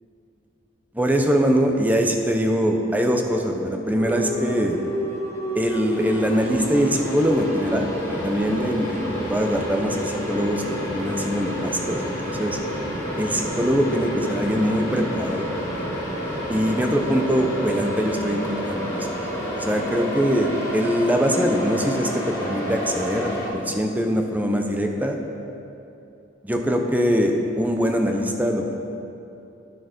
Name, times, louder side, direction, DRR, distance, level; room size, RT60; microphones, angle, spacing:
voice 1, 0.9-4.8 5.5-12.6 13.2-15.5 16.5-19.1 19.5-25.2 26.4-28.8, equal, 10° right, 3 dB, 0.7 m, -23 dB
sound 1, 3.9-23.5, equal, 15° left, 2.1 m, -29 dB
10.5 x 7.8 x 5.2 m, 2.8 s
head